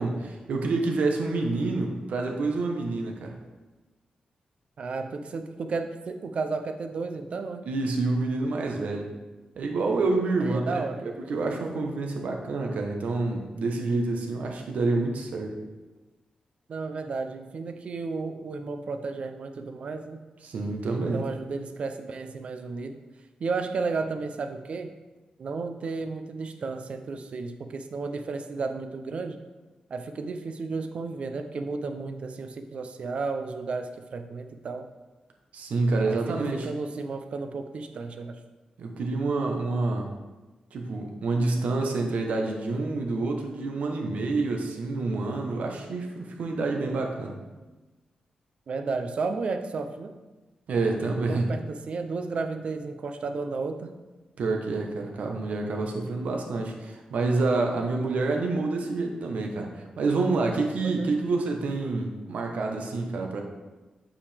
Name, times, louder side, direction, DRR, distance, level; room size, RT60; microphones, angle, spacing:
voice 1, 0.0-3.4 7.6-9.1 9.6-15.6 20.4-21.2 35.5-36.7 38.8-40.1 40.7-47.4 50.7-51.5 54.4-63.4, right 3 dB, 75° right, 2 dB, 1.0 m, -28 dB
voice 2, 4.8-7.7 10.4-11.1 16.7-20.2 21.1-23.0 23.4-24.9 25.4-29.4 29.9-34.9 36.1-38.4 48.7-50.1 51.3-54.0 60.8-61.1, right 4 dB, 50° right, 7 dB, 0.5 m, -33 dB
8.5 x 5.0 x 3.4 m, 1.2 s
wide cardioid pair, 155°, 2 cm